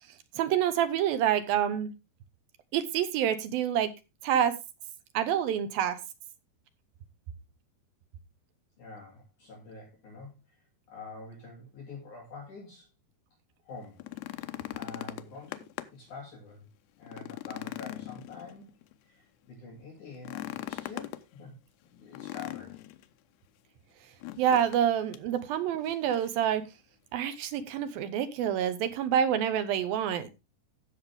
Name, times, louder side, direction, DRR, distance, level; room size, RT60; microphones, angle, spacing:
voice 1, 0.4-1.9 2.7-3.9 4.2-4.6 5.1-6.0 24.4-26.6 27.1-30.4, right 9 dB, 75° right, 2.5 m, -27 dB
voice 2, 8.8-10.6 10.9-12.9 13.6-14.5 14.7-16.7 17.0-18.7 19.0-21.6 21.9-22.8, left 3 dB, 50° left, 3.8 m, -47 dB
sound 1, 13.8-16.1 16.5-16.6 17.0-18.9 20.1-21.2 22.1-23.0 24.2-24.9 25.1-25.3 25.8-26.4 27.6-27.7, left 16 dB, 85° left, 2.8 m, -40 dB
15.5 x 6.5 x 3.5 m
omnidirectional pair, 4.7 m